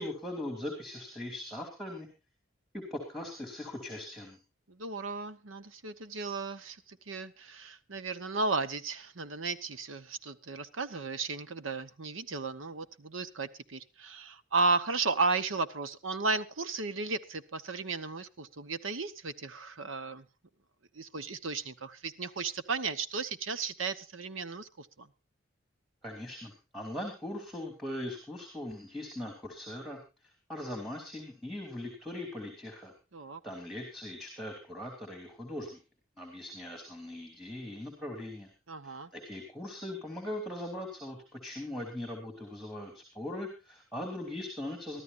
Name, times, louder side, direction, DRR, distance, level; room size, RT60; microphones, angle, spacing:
voice 1, 0.0-2.1 2.7-4.4 26.0-32.9 33.4-35.8 36.2-38.5 38.8-45.0, left 1 dB, ahead, 4 dB, 3.0 m, -40 dB
voice 2, 4.7-20.2 20.9-25.1 33.1-33.4 38.7-39.1, right 3 dB, 85° right, 12 dB, 1.1 m, -34 dB
23.5 x 13.0 x 2.6 m, 0.30 s
head